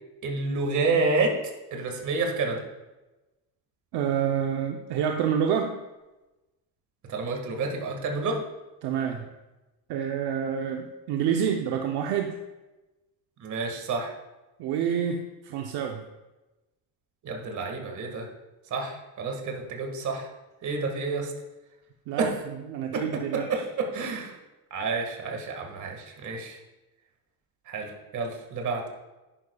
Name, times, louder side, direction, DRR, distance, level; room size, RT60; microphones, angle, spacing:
voice 1, 0.2-2.6 7.1-8.4 13.4-14.1 17.2-18.3 18.7-20.3 20.6-21.3 22.2-22.3 22.9-23.2 23.5-23.6 23.9-24.3 24.7-26.6 27.7-28.8, right 3 dB, 45° right, 2 dB, 1.8 m, -29 dB
voice 2, 3.9-5.8 8.8-9.3 9.9-12.4 14.6-16.0 22.1-23.6, right 8 dB, 65° right, 3 dB, 0.8 m, -28 dB
11.0 x 10.0 x 2.3 m, 1.1 s
cardioid pair, 160°, 41 cm